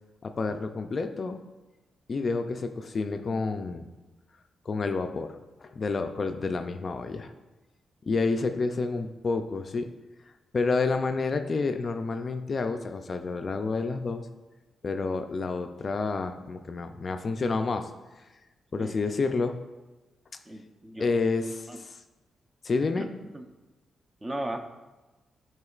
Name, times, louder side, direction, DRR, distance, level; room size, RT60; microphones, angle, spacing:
voice 1, 0.2-1.4 2.1-3.8 4.7-7.3 8.1-9.9 10.5-14.3 14.8-17.9 18.7-19.6 21.0-22.0 22.6-23.1, left 4 dB, 40° left, 7 dB, 0.3 m, -29 dB
voice 2, 20.5-21.3 21.7-21.8 23.0-23.1 23.3-23.5 24.2-24.6, right 1 dB, 20° right, 5 dB, 0.5 m, -36 dB
9.6 x 4.3 x 2.4 m, 1.1 s
cardioid pair, 125°, 0 cm